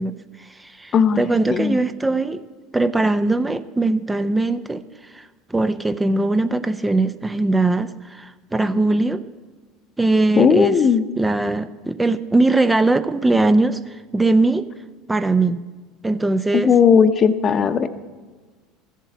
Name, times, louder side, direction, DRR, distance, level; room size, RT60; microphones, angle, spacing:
voice 1, 0.0-2.4 2.7-9.2 10.0-10.8 11.2-14.7 15.1-15.6 16.0-16.7, right 2 dB, 10° right, 11 dB, 0.6 m, -20 dB
voice 2, 0.9-1.8 10.4-11.0 16.5-17.9, left 6 dB, 35° left, 12 dB, 0.9 m, -16 dB
14.5 x 7.4 x 8.4 m, 1.4 s
hypercardioid pair, 70°, 0 cm